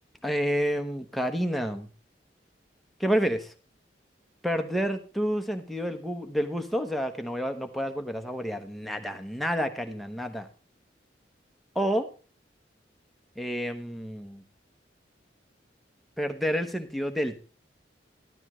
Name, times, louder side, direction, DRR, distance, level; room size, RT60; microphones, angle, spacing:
voice 1, 0.2-1.9 3.0-3.5 4.4-10.5 11.7-12.1 13.4-14.4 16.2-17.4, equal, ahead, 5 dB, 1.1 m, -29 dB
12.5 x 12.5 x 3.2 m, 0.36 s
head